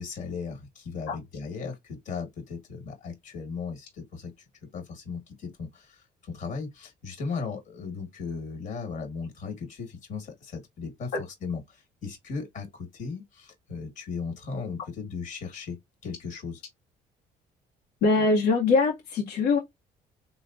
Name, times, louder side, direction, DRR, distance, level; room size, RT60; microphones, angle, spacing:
voice 1, 0.0-4.3 4.7-15.8 16.0-16.6, left 5 dB, 45° left, 1.4 m, -37 dB
voice 2, 18.0-19.6, left 3 dB, 75° left, 0.7 m, -22 dB
3.4 x 2.1 x 2.4 m
cardioid pair, 110°, 17 cm